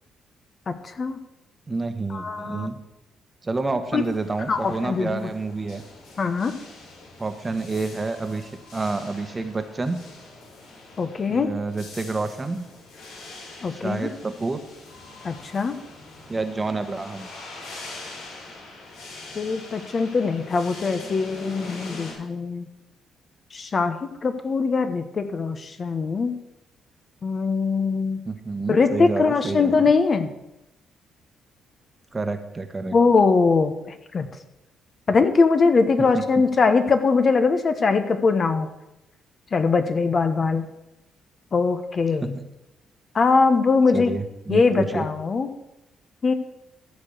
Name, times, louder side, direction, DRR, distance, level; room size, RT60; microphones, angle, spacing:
voice 1, 0.7-1.2 2.1-2.7 3.9-4.0 4.5-5.3 6.2-6.5 11.0-11.5 13.6-14.1 15.2-15.8 19.3-22.7 23.5-24.0 24.2-26.3 27.2-28.2 28.7-30.3 32.9-34.3 35.1-38.7 39.5-40.7 41.5-42.3 43.1-44.1 44.5-45.5 46.2-46.3, left 4 dB, 40° left, 9 dB, 1.1 m, -21 dB
voice 2, 1.7-2.8 3.4-5.8 7.2-10.0 11.3-12.6 13.7-14.6 16.3-17.3 28.2-29.9 32.1-33.0 36.0-36.3 42.2-42.3 43.9-45.1, right 3 dB, 25° right, 8 dB, 1.2 m, -28 dB
sound 1, 3.8-22.1, left 3 dB, 80° left, 5.2 m, -43 dB
14.0 x 4.8 x 8.1 m, 0.92 s
cardioid pair, 90°, 0 cm